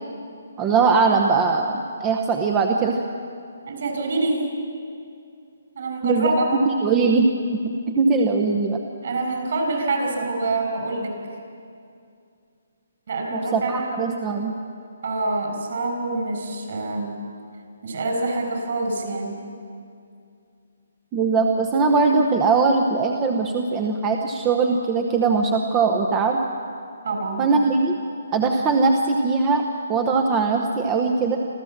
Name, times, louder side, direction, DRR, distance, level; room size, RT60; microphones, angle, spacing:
voice 1, 0.6-3.0 6.0-6.3 6.7-7.3 7.6-8.8 13.3-14.5 21.1-26.4 27.4-28.0 28.3-29.6 29.9-31.4, right 4 dB, 15° right, 3 dB, 1.0 m, -20 dB
voice 2, 3.7-4.4 5.7-6.6 9.0-11.1 13.1-14.1 15.0-17.1 17.8-19.3 27.0-27.4, right 2 dB, 55° right, 3 dB, 6.2 m, -26 dB
27.0 x 14.5 x 7.4 m, 2.4 s
hypercardioid pair, 165°, 0 cm